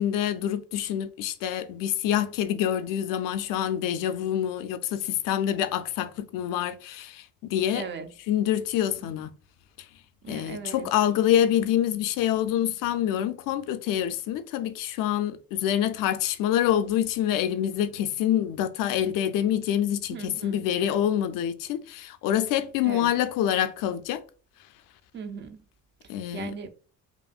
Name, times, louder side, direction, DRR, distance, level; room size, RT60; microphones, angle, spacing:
voice 1, 0.0-7.8 8.3-9.3 10.3-24.2 26.1-26.5, left 10 dB, 80° left, 0.5 m, -26 dB
voice 2, 7.7-8.1 10.2-10.9 20.1-20.6 22.8-23.1 25.1-25.6 26.0-26.7, right 6 dB, 35° right, 0.4 m, -38 dB
5.2 x 2.6 x 2.4 m
cardioid pair, 150°, 33 cm